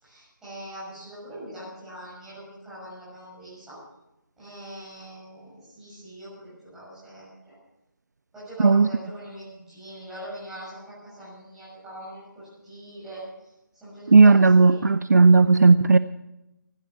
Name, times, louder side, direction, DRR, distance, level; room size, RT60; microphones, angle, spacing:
voice 1, 0.0-3.8 4.4-7.5 8.3-13.2 13.8-15.0, right 1 dB, 5° right, 6.5 m, -42 dB
voice 2, 14.1-16.0, right 4 dB, 55° right, 0.5 m, -15 dB
15.5 x 11.5 x 7.1 m
figure-of-eight pair, 160°, 11 cm